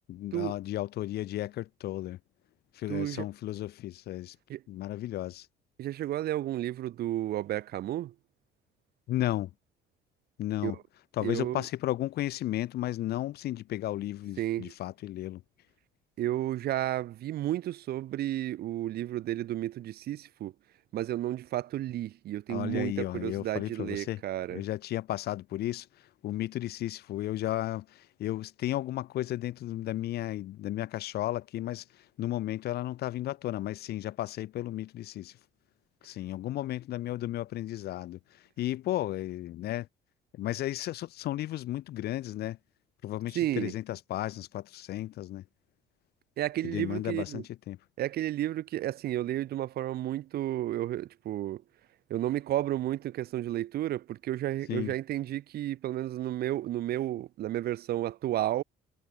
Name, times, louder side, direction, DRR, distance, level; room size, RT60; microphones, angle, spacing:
voice 1, 0.1-2.2 2.7-4.4 4.7-5.5 9.1-9.5 10.4-10.8 11.1-15.4 22.5-24.2 24.5-25.9 26.2-35.4 36.0-39.9 40.3-42.6 43.0-45.4 46.6-47.8 54.7-54.9, left 14 dB, 70° left, 2.2 m, -34 dB
voice 2, 2.9-3.3 4.5-4.6 5.8-8.1 10.6-10.7 11.2-11.6 14.4-14.7 16.2-20.5 20.9-24.6 43.3-43.7 46.4-47.4 48.0-51.6 52.1-58.6, right 13 dB, 70° right, 2.5 m, -32 dB
cardioid pair, 110°, 17 cm